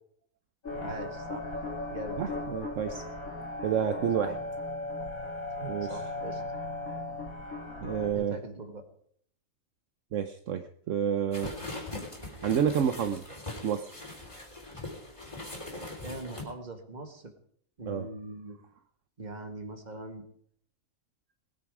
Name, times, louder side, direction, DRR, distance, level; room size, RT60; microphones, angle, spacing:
sound 1, 0.6-8.1, left 2 dB, 80° left, 2.7 m, -37 dB
voice 1, 0.7-1.5 1.9-2.2 3.8-4.4 5.8-6.4 8.1-8.8 16.0-17.3 17.8-18.6 19.2-20.2, right 2 dB, 30° right, 5 dB, 1.9 m, -42 dB
voice 2, 2.2-3.0 3.6-4.3 5.6-6.0 7.8-8.4 10.1-11.5 12.4-13.2 13.6-13.9 17.9-18.1, right 8 dB, 65° right, 8 dB, 1.1 m, -29 dB
sound 2, 11.3-16.4, left 2 dB, 20° left, 3.5 m, -41 dB
20.0 x 9.6 x 4.9 m, 0.63 s
omnidirectional pair, 1.4 m